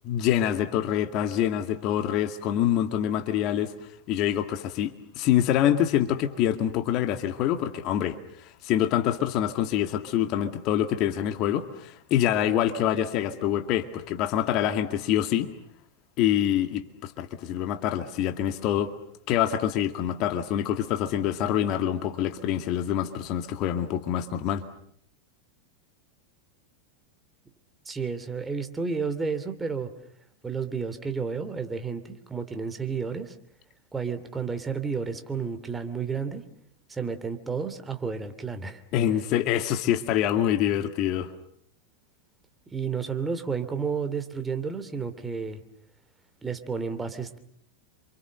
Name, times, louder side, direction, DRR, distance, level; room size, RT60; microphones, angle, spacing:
voice 1, 0.0-3.7 4.1-15.5 16.2-18.9 19.3-24.6 38.9-41.3, left 11 dB, 40° left, 7 dB, 2.1 m, -26 dB
voice 2, 27.9-29.9 30.4-33.3 33.9-36.4 36.9-38.8 42.7-45.6 46.4-47.4, right 5 dB, 10° right, 8 dB, 2.8 m, -31 dB
29.0 x 27.0 x 6.7 m, 0.68 s
figure-of-eight pair, 90°, 0 cm